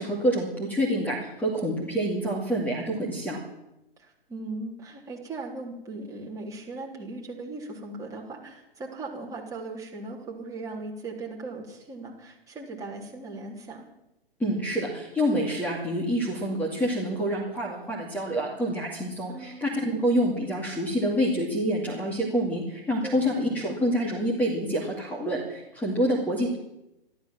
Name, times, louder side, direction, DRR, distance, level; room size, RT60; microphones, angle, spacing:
voice 1, 0.0-3.4 14.4-26.6, equal, 5° left, -2 dB, 2.4 m, -27 dB
voice 2, 4.0-13.8 19.3-19.7 23.0-23.3, right 3 dB, 10° right, -2 dB, 3.4 m, -38 dB
14.0 x 12.5 x 7.5 m, 0.90 s
figure-of-eight pair, 130°, 30 cm